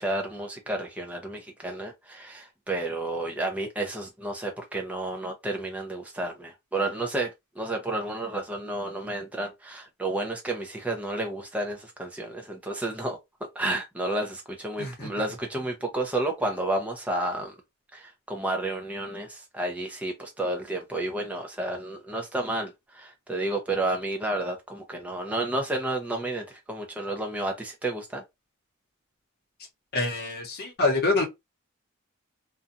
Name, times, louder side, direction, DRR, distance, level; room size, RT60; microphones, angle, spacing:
voice 1, 0.0-13.2 13.6-17.5 17.9-28.2, right 2 dB, 5° right, 0.6 m, -31 dB
voice 2, 14.8-15.1 29.9-31.2, left 2 dB, 45° left, 0.9 m, -26 dB
2.6 x 2.3 x 2.5 m
head